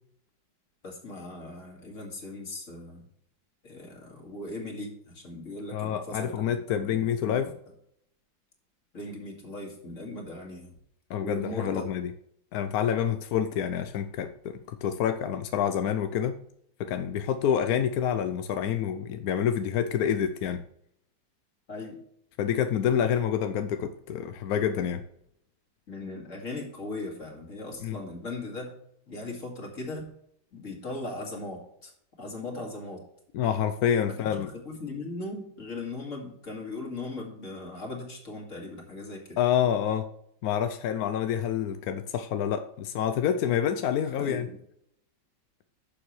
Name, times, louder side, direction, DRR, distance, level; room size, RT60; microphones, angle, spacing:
voice 1, 0.8-3.1 3.6-7.5 8.9-10.7 11.2-11.9 21.7-22.0 25.9-28.7 29.1-30.1 30.5-31.9 32.2-33.0 34.1-39.4 44.1-44.6, left 2 dB, 40° left, 0 dB, 2.5 m, -38 dB
voice 2, 5.7-7.5 11.1-12.1 12.5-16.4 16.8-20.6 22.4-25.0 27.8-28.0 33.3-34.5 39.4-40.1 40.4-44.5, left 9 dB, 70° left, 8 dB, 0.9 m, -27 dB
11.5 x 7.0 x 3.2 m, 0.72 s
omnidirectional pair, 2.1 m